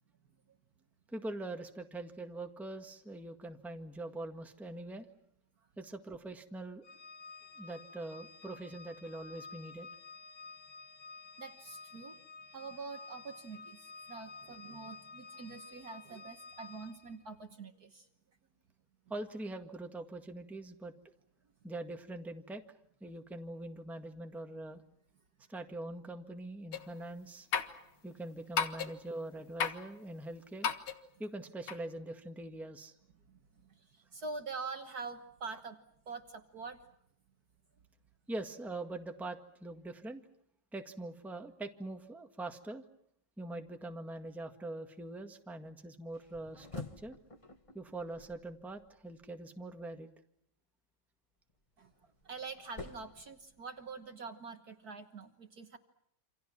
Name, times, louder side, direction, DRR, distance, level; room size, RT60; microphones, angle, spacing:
voice 1, 1.1-5.1 5.8-6.8 7.6-9.9 19.1-20.9 21.6-22.6 23.0-24.8 25.5-27.5 28.0-30.7 31.2-32.9 38.3-40.2 40.7-42.8 43.4-47.1 47.7-50.1, right 2 dB, ahead, 5 dB, 1.5 m, -43 dB
Organ, 6.8-17.2, left 4 dB, 55° left, 4.0 m, -51 dB
voice 2, 11.4-12.2 12.5-18.1 33.3-35.8 36.0-36.8 51.8-51.9 52.2-55.8, right 4 dB, 50° right, 7 dB, 1.6 m, -45 dB
sound 1, 26.7-27.0 27.5-27.8 28.6-29.1 29.6-29.9 30.6-31.0 31.7-31.8, left 7 dB, 80° left, 2.4 m, -34 dB
sound 2, 46.1-49.3 51.5-54.1, left 3 dB, 20° left, 1.1 m, -50 dB
29.0 x 26.5 x 6.1 m, 0.73 s
omnidirectional pair, 2.3 m